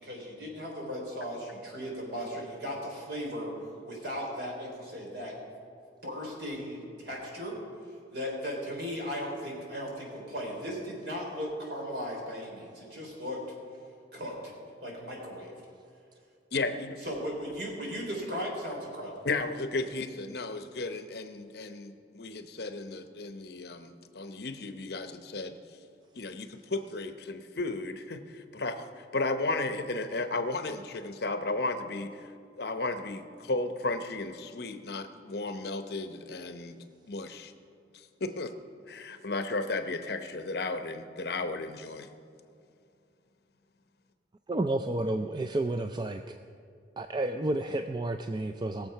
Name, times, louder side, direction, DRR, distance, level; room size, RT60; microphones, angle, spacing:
voice 1, 0.0-3.5 3.8-5.4 6.0-7.6 7.9-13.4 14.1-14.3 14.8-15.5 17.0-19.3, equal, 60° right, -1 dB, 3.8 m, -37 dB
voice 2, 16.5-17.0 19.2-25.6 26.1-32.3 32.6-37.5 37.9-38.5 38.9-42.1, left 2 dB, 60° left, 8 dB, 0.8 m, -34 dB
voice 3, 44.5-46.4 47.0-48.9, right 2 dB, 25° right, 7 dB, 0.4 m, -31 dB
20.0 x 7.4 x 5.7 m, 2.4 s
head